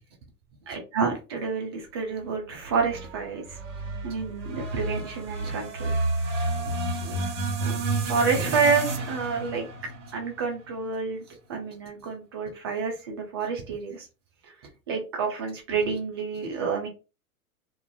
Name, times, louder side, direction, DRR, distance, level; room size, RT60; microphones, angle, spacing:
voice 1, 0.7-3.6 4.0-5.9 7.0-7.1 7.6-9.7 10.1-11.2 11.5-14.1 14.9-16.9, right 5 dB, 20° right, 1 dB, 0.3 m, -29 dB
sound 1, 2.6-11.0, right 2 dB, 55° right, 1.3 m, -31 dB
2.5 x 2.1 x 2.5 m, 0.31 s
hypercardioid pair, 110°, 44 cm